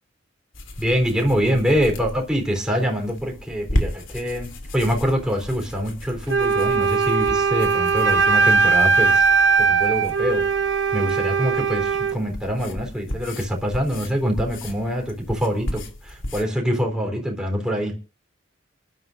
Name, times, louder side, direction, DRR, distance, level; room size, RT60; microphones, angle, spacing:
sound 1, 0.5-16.5, left 1 dB, 75° left, 2.8 m, -34 dB
voice 1, 0.8-9.3 9.6-10.4 10.9-17.9, equal, 5° right, 1 dB, 3.7 m, -24 dB
Wind instrument woodwind instrument, 6.3-12.2, right 5 dB, 65° right, 1.0 m, -19 dB
28.5 x 11.5 x 2.6 m, 0.34 s
head